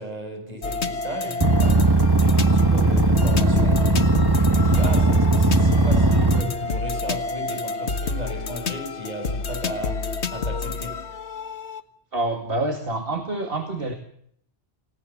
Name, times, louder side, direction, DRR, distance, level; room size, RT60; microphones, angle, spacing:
voice 1, 0.0-11.1, equal, 40° right, 6.9 m, -36 dB
sound 1, 0.6-11.8, left 4 dB, 80° left, 1.7 m, -29 dB
sound 2, 1.4-6.4, right 2 dB, 20° right, 1.7 m, -18 dB
voice 2, 12.1-13.9, right 2 dB, 60° right, 2.4 m, -27 dB
29.0 x 16.5 x 7.3 m
omnidirectional pair, 1.1 m